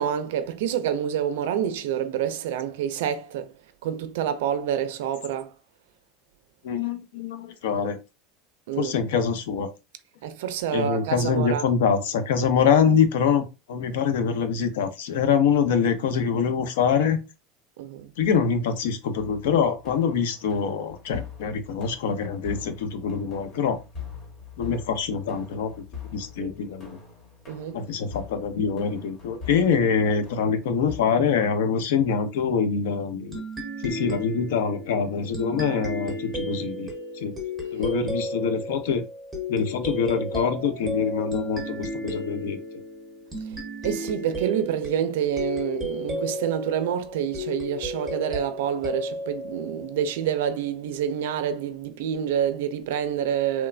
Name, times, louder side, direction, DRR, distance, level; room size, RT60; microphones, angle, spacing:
voice 1, 0.0-3.5 3.8-5.5 8.7-8.9 10.2-11.7 17.8-18.1 26.4-26.5 27.5-27.8 43.8-53.7, right 9 dB, 80° right, 0.3 m, -27 dB
voice 2, 6.6-8.0 8.8-9.7 10.7-13.4 13.7-17.2 18.2-23.8 24.6-25.7 26.1-27.0 27.7-33.4 33.8-36.9 37.1-37.3 37.7-39.0 39.5-42.6, left 6 dB, 85° left, 0.5 m, -24 dB
sound 1, 19.2-31.0, left 6 dB, 40° left, 0.9 m, -43 dB
sound 2, 33.3-50.5, equal, 10° right, 0.8 m, -34 dB
3.0 x 2.1 x 2.4 m
supercardioid pair, 160°, 0 cm